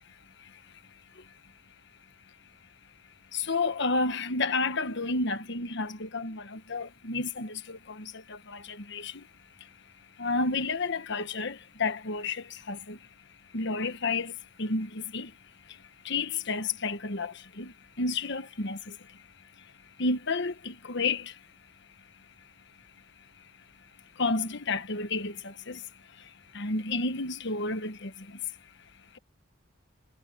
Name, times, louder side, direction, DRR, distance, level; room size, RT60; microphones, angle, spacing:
voice 1, 3.5-7.8 8.9-9.1 10.2-11.5 11.8-13.0 13.5-14.3 14.6-15.3 16.1-17.7 18.0-18.8 20.0-21.2 24.2-25.3 25.7-25.8 26.5-28.1, left 3 dB, 60° left, 1.4 m, -30 dB
head